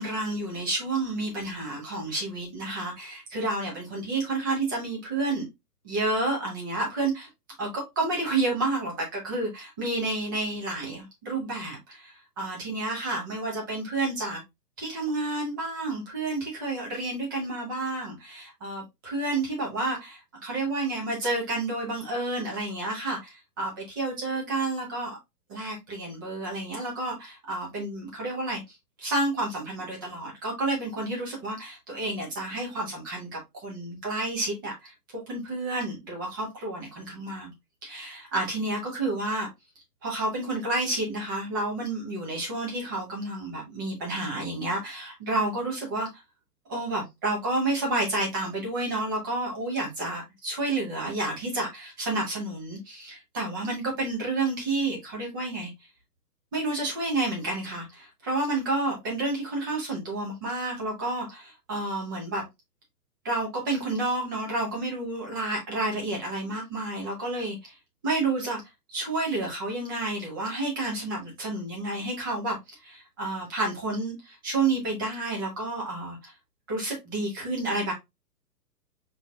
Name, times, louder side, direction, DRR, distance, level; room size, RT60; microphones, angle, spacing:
voice 1, 0.0-5.5 5.8-7.3 7.6-14.4 14.8-25.2 25.5-28.6 29.0-34.9 35.3-37.5 37.8-39.5 40.0-46.1 46.7-55.7 56.5-62.5 63.2-67.7 68.0-68.6 68.9-72.6 72.8-76.3 76.7-77.9, right 2 dB, 15° right, 0.7 m, -30 dB
4.9 x 3.0 x 2.3 m
hypercardioid pair, 165°, 49 cm